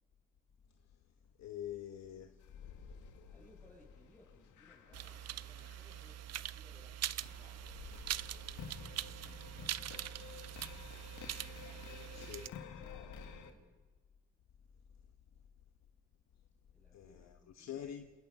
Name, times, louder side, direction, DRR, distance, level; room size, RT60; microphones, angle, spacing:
voice 1, 1.4-2.4 12.1-12.4 16.9-18.1, left 10 dB, 60° left, 1.2 m, -46 dB
sound 1, 2.4-13.5, left 7 dB, 80° left, 2.0 m, -52 dB
voice 2, 3.3-9.9 11.6-13.8 16.7-17.8, left 1 dB, 5° left, 7.1 m, -65 dB
sound 2, 4.9-12.5, right 12 dB, 60° right, 0.6 m, -43 dB
28.0 x 19.0 x 5.5 m
cardioid pair, 90°, 30 cm